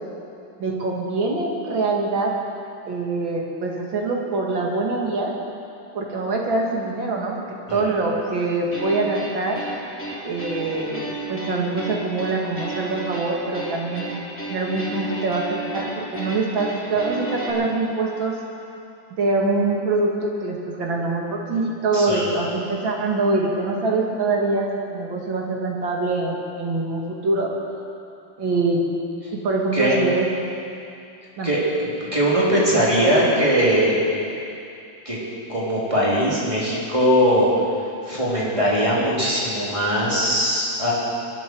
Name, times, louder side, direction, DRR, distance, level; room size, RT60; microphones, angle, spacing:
voice 1, 0.6-2.3 2.9-5.3 5.9-7.4 7.7-9.6 10.2-14.1 14.5-18.3 19.1-27.5 28.4-28.8 29.3-30.3 31.4-31.5, right 3 dB, 80° right, -1 dB, 2.8 m, -24 dB
sound 1, 8.7-17.5, right 2 dB, 5° left, 2.4 m, -33 dB
voice 2, 21.9-22.3 29.7-30.0 31.4-33.9 35.1-35.2 35.5-37.5 38.1-40.9, equal, 15° right, -7 dB, 3.5 m, -20 dB
22.5 x 12.0 x 4.7 m, 2.6 s
omnidirectional pair, 2.1 m